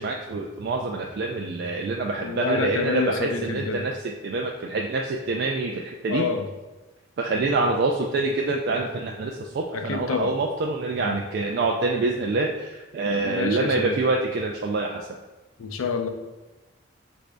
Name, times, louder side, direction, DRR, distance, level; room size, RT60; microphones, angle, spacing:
voice 1, 0.0-6.2 7.2-15.1, right 3 dB, 50° right, 1 dB, 0.3 m, -26 dB
voice 2, 2.1-3.8 6.1-6.5 9.7-10.3 11.0-11.2 13.1-14.0 15.6-16.1, left 5 dB, 85° left, 5 dB, 0.5 m, -28 dB
5.9 x 2.6 x 3.3 m, 1.1 s
head